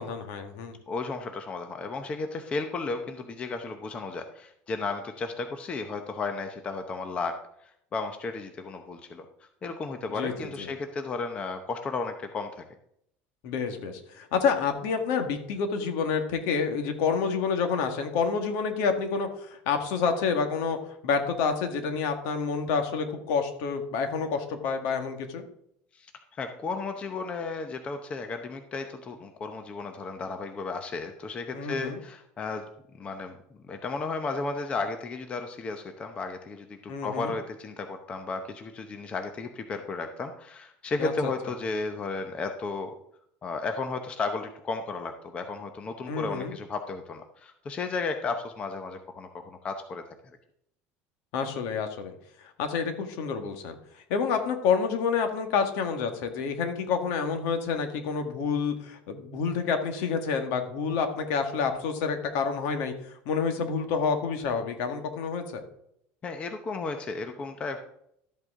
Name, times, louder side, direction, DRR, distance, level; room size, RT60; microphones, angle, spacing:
voice 1, 0.0-0.8 10.1-10.7 13.4-20.8 21.0-25.5 31.5-32.0 36.9-37.3 41.0-41.3 46.1-46.6 51.3-52.1 52.4-53.8 54.1-65.6, left 5 dB, 65° left, 6 dB, 1.8 m, -28 dB
voice 2, 0.9-7.4 7.9-9.3 9.6-12.6 25.9-26.1 26.4-32.7 33.0-33.4 33.7-42.9 43.4-50.0 66.2-67.8, left 3 dB, 20° left, 6 dB, 0.8 m, -34 dB
12.5 x 8.1 x 3.7 m, 0.72 s
cardioid pair, 165°, 5 cm